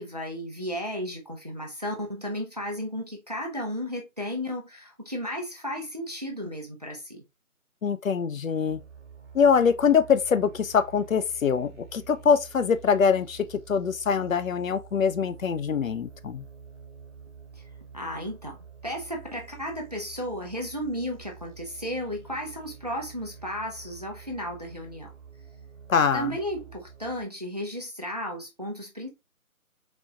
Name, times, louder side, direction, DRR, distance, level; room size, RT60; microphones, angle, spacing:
voice 1, 0.0-7.2 17.6-17.7 17.9-25.1 26.1-29.1, equal, 30° right, 0.5 m, -34 dB
voice 2, 7.8-8.8 9.3-16.4 25.9-26.3, left 6 dB, 65° left, 0.5 m, -23 dB
sound 1, 8.7-27.2, right 6 dB, 55° right, 1.0 m, -48 dB
4.1 x 2.9 x 2.3 m
figure-of-eight pair, 150°, 43 cm